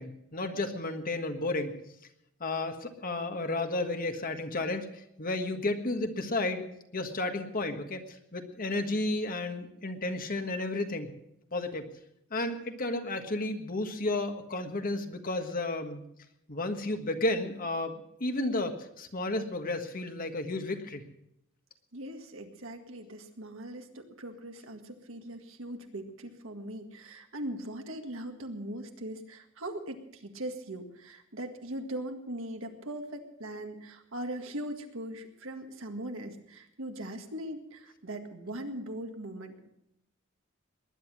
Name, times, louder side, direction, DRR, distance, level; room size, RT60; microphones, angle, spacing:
voice 1, 0.0-1.8 2.4-6.6 6.9-11.1 11.5-11.9 12.3-16.1 16.5-17.9 18.2-21.1, left 2 dB, 45° left, 6 dB, 1.5 m, -32 dB
voice 2, 21.9-39.7, right 1 dB, 70° right, 5 dB, 1.8 m, -40 dB
20.0 x 10.5 x 6.2 m, 0.80 s
head